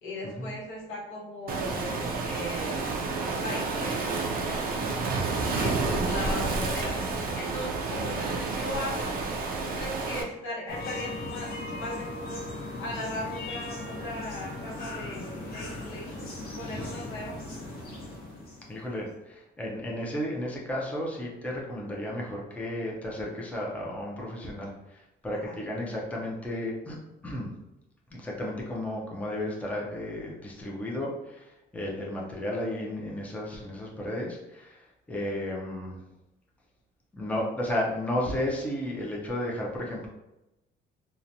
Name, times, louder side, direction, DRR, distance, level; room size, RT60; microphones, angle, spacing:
voice 1, 0.0-3.0 3.4-4.1 5.4-7.0 7.3-9.2 9.6-12.4 12.8-16.3 16.6-17.4 25.3-25.5, left 1 dB, 80° left, -5 dB, 1.1 m, -38 dB
Waves surf, 1.5-10.2, right 3 dB, 50° right, 0.4 m, -30 dB
sound 1, 10.7-19.0, left 2 dB, 50° left, 0.7 m, -38 dB
voice 2, 18.7-27.0 27.2-27.5 28.1-36.0 37.1-40.1, left 1 dB, 5° left, -3 dB, 0.5 m, -33 dB
2.8 x 2.1 x 2.5 m, 0.94 s
cardioid pair, 125°, 20 cm